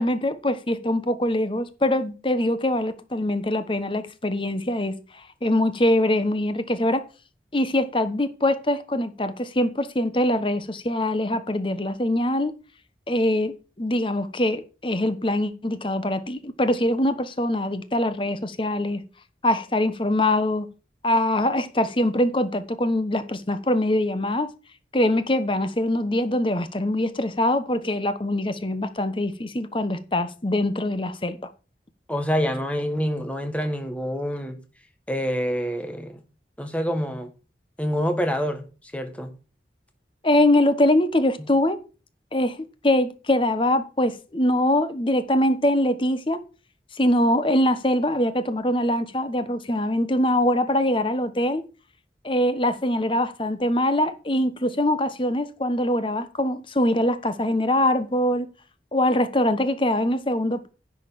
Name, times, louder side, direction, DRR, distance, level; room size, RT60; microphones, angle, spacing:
voice 1, 0.0-5.0 5.4-7.0 7.5-12.5 13.1-19.0 19.4-20.7 21.0-24.5 24.9-31.4 40.2-41.8 42.3-42.6 42.8-46.4 47.0-51.6 52.2-58.5 58.9-60.7, left 1 dB, 30° left, 1.1 m, -23 dB
voice 2, 32.1-34.6 35.1-36.1 36.6-37.3 37.8-38.6 38.9-39.3 41.4-41.5, equal, 5° left, 1.5 m, -26 dB
10.5 x 5.4 x 7.0 m
head